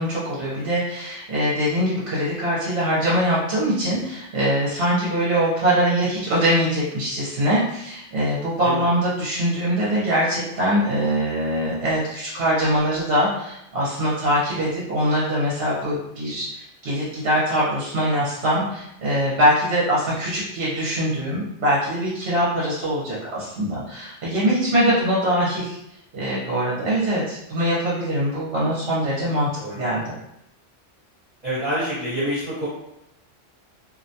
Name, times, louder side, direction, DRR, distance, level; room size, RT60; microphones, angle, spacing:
voice 1, 0.0-25.7 26.1-30.0, equal, 60° right, -7 dB, 0.9 m, -23 dB
voice 2, 29.6-29.9 31.4-32.7, equal, 35° right, -12 dB, 1.1 m, -27 dB
2.5 x 2.1 x 2.6 m, 0.81 s
omnidirectional pair, 1.2 m